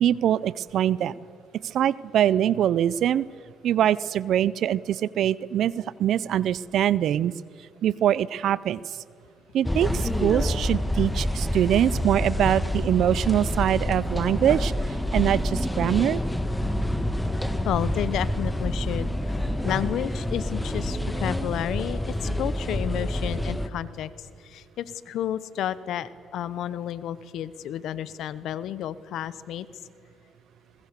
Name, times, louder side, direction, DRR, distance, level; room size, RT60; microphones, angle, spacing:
voice 1, 0.0-1.1 1.7-3.2 3.6-5.7 6.0-7.3 7.8-8.8 9.5-14.7 15.1-16.2, right 10 dB, 75° right, 20 dB, 0.4 m, -23 dB
sound 1, 9.6-23.7, left 1 dB, 5° left, 1.5 m, -27 dB
voice 2, 17.6-24.1 24.4-29.7, left 11 dB, 80° left, 17 dB, 0.9 m, -31 dB
22.0 x 20.5 x 6.7 m, 2.3 s
cardioid pair, 90°, 0 cm